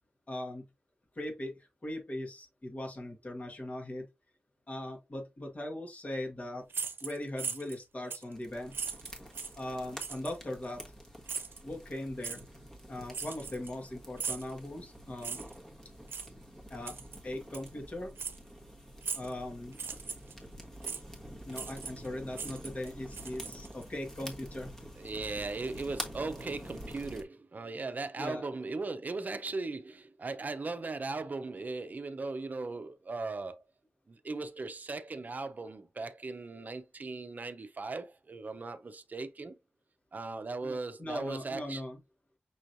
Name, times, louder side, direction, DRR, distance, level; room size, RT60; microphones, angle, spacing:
voice 1, 0.3-0.6 1.1-4.1 4.7-6.6 7.0-8.9 9.6-10.8 11.6-12.4 12.9-15.4 16.7-16.9 17.2-18.1 19.1-19.8 20.8-20.9 21.5-24.7 28.2-28.4 40.6-42.0, left 1 dB, 40° left, 1.6 m, -39 dB
sound 1, 6.7-7.8 8.1-8.3 8.7-9.6 10.0-10.4 11.3-11.6 12.2-12.4 13.1-13.8 14.2-14.5 15.2-15.6 16.1-16.3 16.9-17.2 17.5-17.7 18.2-18.4 19.0-19.3 19.7-20.3 20.8-21.0 21.5-22.1 22.3-23.8, right 5 dB, 85° right, 0.6 m, -39 dB
sound 2, 8.3-27.2, equal, 15° left, 1.3 m, -47 dB
voice 2, 25.0-33.6 34.1-39.6 40.1-41.8, right 3 dB, 50° right, 0.6 m, -38 dB
6.1 x 3.1 x 2.6 m
wide cardioid pair, 85°, 4 cm